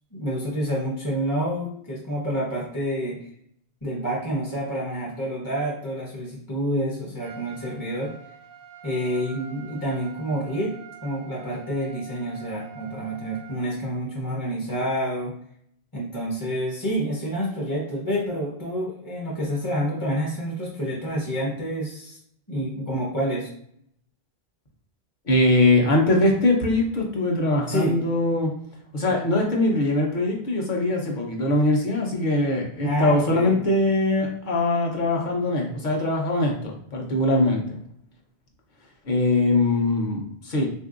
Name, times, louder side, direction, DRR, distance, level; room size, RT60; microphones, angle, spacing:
voice 1, 0.1-3.3 3.8-8.1 8.8-15.3 15.9-22.2 22.5-23.5 27.7-28.0 32.8-33.6, equal, 25° left, -4 dB, 0.6 m, -28 dB
Trumpet, 7.2-13.7, right 6 dB, 65° right, 0.7 m, -45 dB
voice 2, 25.3-28.5 28.9-37.6 39.0-40.7, left 2 dB, 50° left, 0 dB, 0.8 m, -22 dB
3.5 x 2.6 x 2.4 m, 0.67 s
omnidirectional pair, 1.1 m